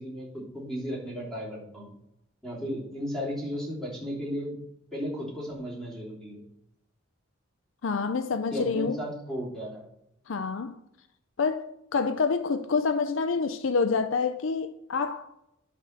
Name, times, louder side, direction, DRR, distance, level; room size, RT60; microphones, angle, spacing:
voice 1, 0.0-1.9 2.4-4.6 4.9-6.4 8.5-9.9, equal, ahead, 3.3 m, -35 dB
voice 2, 7.8-9.0 10.3-10.8 11.4-15.3, left 4 dB, 65° left, 0.5 m, -27 dB
11.0 x 3.8 x 6.6 m
head